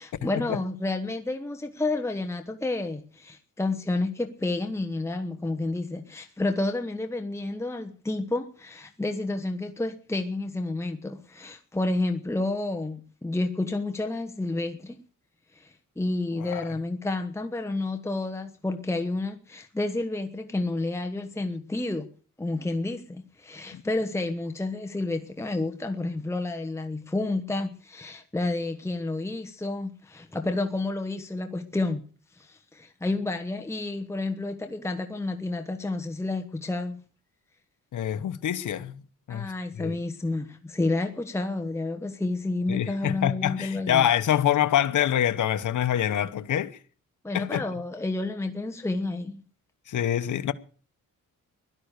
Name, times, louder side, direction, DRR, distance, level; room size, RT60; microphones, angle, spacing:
voice 1, 0.0-15.0 15.5-22.1 22.4-32.0 32.3-37.0 39.3-44.1 47.2-49.4, left 2 dB, 10° left, 1.1 m, -30 dB
voice 2, 16.3-16.6 23.7-23.8 37.9-39.0 39.3-40.0 42.7-46.8 47.3-47.6 49.9-50.5, left 10 dB, 65° left, 1.0 m, -26 dB
16.5 x 11.5 x 6.6 m
wide cardioid pair, 125°, 32 cm